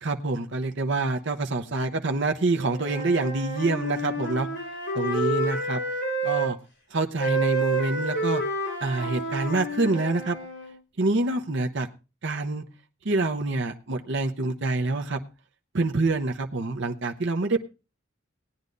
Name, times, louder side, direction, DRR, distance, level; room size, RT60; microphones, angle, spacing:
voice 1, 0.0-4.5 4.9-5.8 6.2-6.6 6.9-8.4 8.8-10.4 11.0-11.9 12.2-12.6 13.0-15.2 15.7-17.6, right 3 dB, 60° right, 4 dB, 0.8 m, -26 dB
Wind instrument woodwind instrument, 2.6-6.5 7.2-10.7, right 2 dB, 65° left, 5.7 m, -29 dB
18.5 x 9.5 x 2.6 m, 0.30 s
head